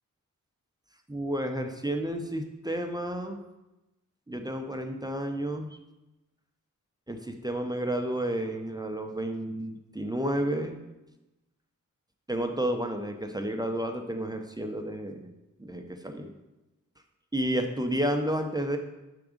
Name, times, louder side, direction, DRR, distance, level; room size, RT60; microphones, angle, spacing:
voice 1, 1.1-3.4 4.3-5.8 7.1-10.8 12.3-15.3 15.6-16.3 17.3-18.8, right 1 dB, 10° right, 4 dB, 0.5 m, -31 dB
5.9 x 3.5 x 5.0 m, 1.0 s
wide cardioid pair, 70°, 33 cm